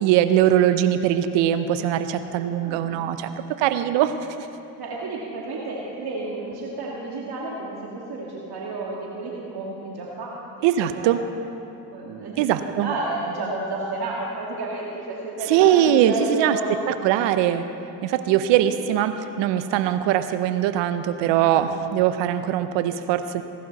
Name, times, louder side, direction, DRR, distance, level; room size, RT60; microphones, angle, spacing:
voice 1, 0.0-3.3 3.6-4.5 10.6-11.2 12.4-12.9 15.5-16.6 16.9-17.7 18.0-23.4, right 11 dB, 75° right, 11 dB, 0.8 m, -21 dB
voice 2, 2.4-3.1 4.8-10.7 10.9-11.1 11.9-16.9 18.6-18.7, right 2 dB, 55° right, -3 dB, 2.2 m, -31 dB
17.0 x 12.0 x 4.1 m, 2.9 s
hypercardioid pair, 55°, 45 cm